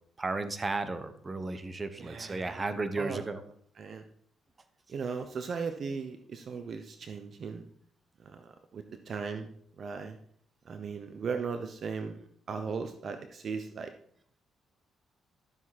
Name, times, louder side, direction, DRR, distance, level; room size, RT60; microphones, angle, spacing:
voice 1, 0.2-3.4, right 3 dB, 25° right, 10 dB, 1.1 m, -34 dB
voice 2, 2.0-2.6 2.9-3.2 3.8-4.0 4.9-7.7 8.2-9.5 9.8-10.2 10.7-13.9, right 5 dB, 55° right, 8 dB, 0.8 m, -37 dB
12.5 x 7.4 x 4.3 m, 0.64 s
cardioid pair, 90°, 0 cm